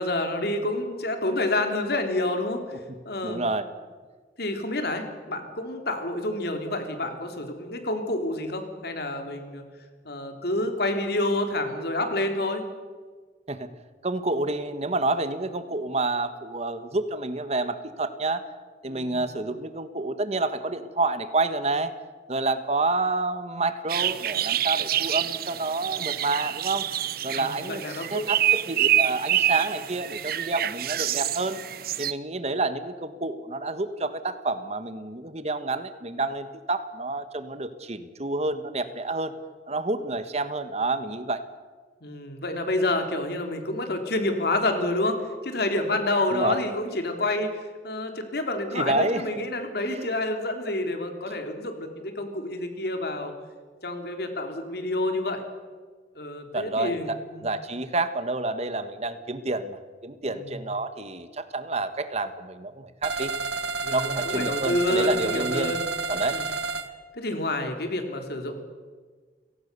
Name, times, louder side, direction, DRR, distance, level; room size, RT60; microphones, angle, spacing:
voice 1, 0.0-2.6 3.0-3.4 4.4-9.6 10.0-12.6 18.9-19.2 27.3-28.2 42.0-45.2 45.4-47.5 47.8-53.3 53.8-55.4 56.1-57.5 60.3-60.6 63.8-65.9 66.3-66.4 67.1-68.6, left 2 dB, 60° left, 5 dB, 3.4 m, -28 dB
voice 2, 3.2-3.7 13.5-13.7 14.0-18.4 18.8-21.9 22.3-26.8 27.2-31.6 32.0-39.3 39.7-41.4 46.3-46.6 48.7-49.2 49.8-50.1 56.5-63.3 63.9-65.7 66.1-66.4, right 2 dB, 40° right, 11 dB, 1.5 m, -29 dB
sound 1, 23.9-32.1, right 12 dB, 55° right, 0.8 m, -27 dB
sound 2, 63.0-66.9, right 4 dB, 85° right, 1.5 m, -30 dB
30.0 x 18.0 x 6.9 m, 1.5 s
head